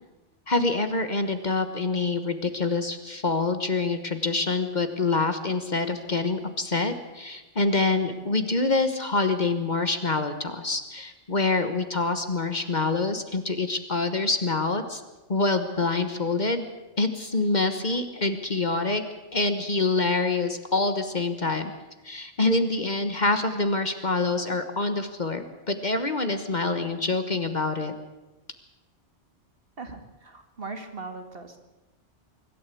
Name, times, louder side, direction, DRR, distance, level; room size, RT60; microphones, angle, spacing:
voice 1, 0.5-15.0 15.3-16.6 17.0-19.0 19.3-21.7 22.0-27.9, left 3 dB, 40° left, 8 dB, 1.4 m, -26 dB
voice 2, 29.8-31.6, right 3 dB, 55° right, 6 dB, 2.2 m, -39 dB
24.5 x 12.5 x 8.4 m, 1.1 s
omnidirectional pair, 1.2 m